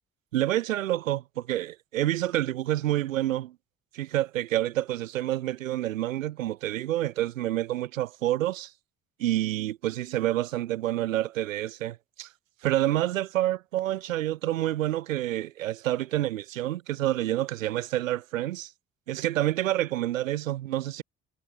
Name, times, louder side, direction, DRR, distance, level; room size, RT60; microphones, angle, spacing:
voice 1, 0.3-3.5 3.9-8.7 9.2-12.3 12.6-18.7 19.1-21.0, right 14 dB, 80° right, 2.8 m, -28 dB
figure-of-eight pair, 40°, 39 cm